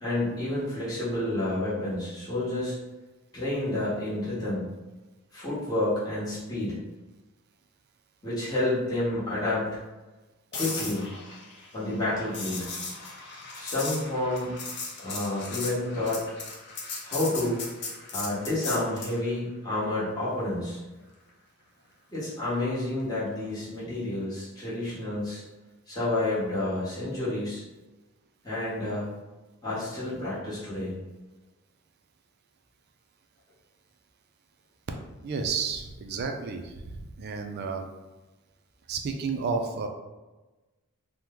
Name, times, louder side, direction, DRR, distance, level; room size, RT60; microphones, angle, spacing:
voice 1, 0.0-2.7 3.3-4.6 5.3-6.8 8.2-9.8 10.5-11.1 11.7-12.7 13.6-14.5 15.0-16.3 17.0-17.6 18.1-20.8 22.1-25.4 25.9-27.6 28.4-29.1 29.6-30.9, left 1 dB, 15° left, -10 dB, 1.0 m, -29 dB
sound 1, 10.5-19.2 23.4-23.6, left 4 dB, 50° left, 0.6 m, -37 dB
voice 2, 35.2-37.9 38.9-39.9, right 5 dB, 45° right, 4 dB, 0.3 m, -31 dB
2.9 x 2.1 x 3.5 m, 1.1 s
head